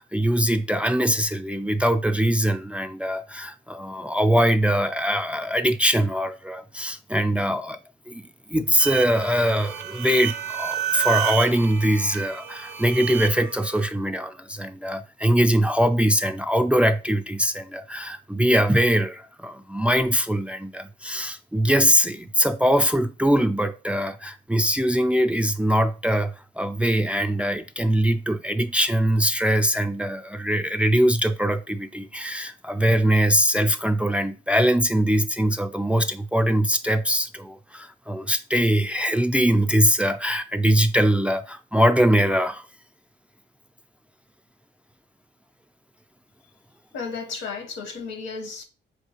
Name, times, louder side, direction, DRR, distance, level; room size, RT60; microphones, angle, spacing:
voice 1, 0.0-7.8 8.1-42.6, equal, 5° right, 0.3 m, -22 dB
sound 1, 8.8-13.9, right 11 dB, 85° right, 0.5 m, -30 dB
voice 2, 46.9-48.6, left 5 dB, 85° left, 0.9 m, -33 dB
4.4 x 2.4 x 2.8 m
cardioid pair, 75°, 19 cm